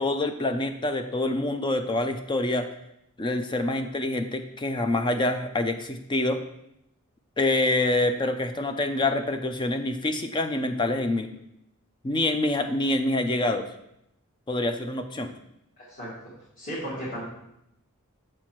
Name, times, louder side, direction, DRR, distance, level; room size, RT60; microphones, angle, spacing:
voice 1, 0.0-2.7 3.2-6.4 7.4-11.3 12.0-13.7 14.5-15.3, left 2 dB, 20° left, 7 dB, 0.4 m, -26 dB
voice 2, 15.8-16.1 16.6-17.2, equal, 40° left, -9 dB, 2.1 m, -34 dB
7.3 x 4.4 x 4.5 m, 0.79 s
head